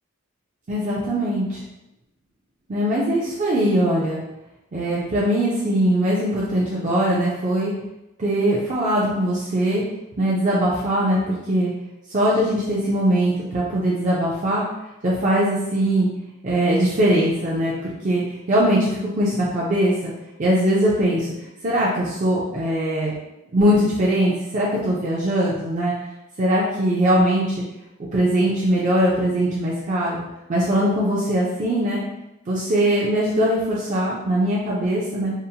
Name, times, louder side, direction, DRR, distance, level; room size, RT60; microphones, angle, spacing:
voice 1, 0.7-1.6 2.7-4.2 4.7-7.7 8.2-9.8 10.2-11.7 12.1-14.6 15.0-16.1 16.4-18.2 18.5-20.1 20.4-21.3 21.6-23.1 23.5-25.9 26.4-27.6 28.1-30.2 30.5-32.0 32.5-35.3, right 1 dB, 35° right, -7 dB, 0.4 m, -21 dB
2.7 x 2.0 x 2.7 m, 0.92 s
head